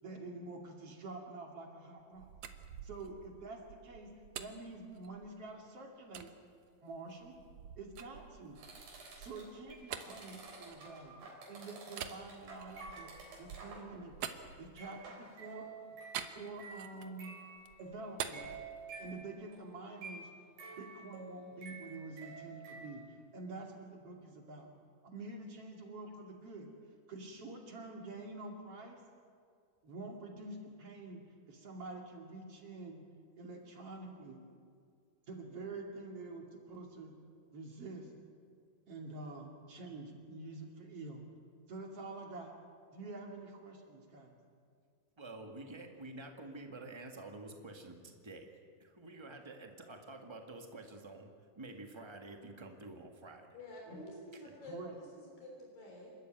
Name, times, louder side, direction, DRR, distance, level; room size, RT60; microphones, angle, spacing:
voice 1, 0.0-2.3 2.8-4.1 4.4-6.3 6.8-7.4 7.8-8.6 9.2-11.2 11.5-13.1 13.4-14.2 14.6-15.7 16.3-17.3 17.8-18.5 19.0-20.3 20.8-23.0 23.3-24.7 25.0-26.7 27.1-29.0 29.8-33.0 33.4-34.4 35.3-37.1 37.5-38.1 38.9-41.2 41.7-42.5 42.9-44.3 53.9-54.0 54.7-55.0, right 3 dB, 45° right, 1 dB, 3.2 m, -47 dB
sound 1, 2.0-5.5 6.1-6.3 6.9-11.3 11.9-15.1 16.1-17.2 17.6-19.4, right 9 dB, 65° right, 2.0 m, -47 dB
sound 2, 8.6-13.9 14.2-14.5 14.8-23.1, right 3 dB, 90° right, 5.5 m, -51 dB
voice 2, 45.2-53.6 54.4-54.5, right 2 dB, 30° right, 3 dB, 0.5 m, -49 dB
voice 3, 53.5-56.1, left 1 dB, 85° left, -1 dB, 5.4 m, -49 dB
28.5 x 13.0 x 9.1 m, 2.2 s
omnidirectional pair, 3.9 m